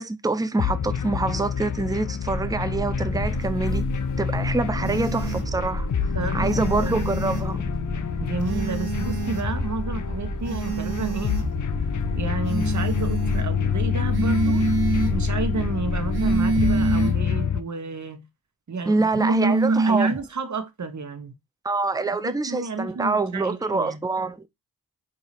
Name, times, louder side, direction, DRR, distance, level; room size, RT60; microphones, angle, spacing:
voice 1, 0.0-3.8 4.2-5.9 6.3-7.7 18.9-20.1 21.6-24.4, right 3 dB, 10° right, 0.5 m, -25 dB
sound 1, 0.6-17.6, left 8 dB, 50° left, 0.5 m, -28 dB
sound 2, 2.2-16.9, equal, 35° left, 2.1 m, -31 dB
voice 2, 4.8-5.2 6.1-6.9 8.2-11.4 12.1-14.7 15.1-18.2 18.7-21.4 22.2-24.0, right 4 dB, 45° right, 1.1 m, -31 dB
sound 3, 4.8-5.5 6.4-7.5 8.4-9.5 10.4-11.5 12.4-13.5 14.1-15.2 16.1-17.2 19.1-20.2, right 4 dB, 75° right, 1.2 m, -25 dB
4.1 x 2.7 x 4.0 m
cardioid pair, 40°, 39 cm